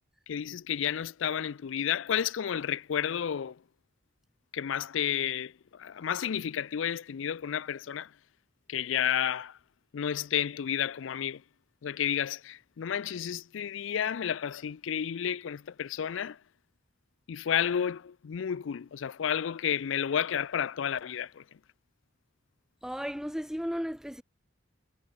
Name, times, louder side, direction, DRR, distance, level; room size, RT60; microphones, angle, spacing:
voice 1, 0.3-3.6 4.5-8.1 8.7-9.6 9.9-11.4 11.8-16.4 17.3-21.4, left 9 dB, 80° left, 0.4 m, -31 dB
voice 2, 22.8-24.2, equal, 5° right, 1.6 m, -34 dB
head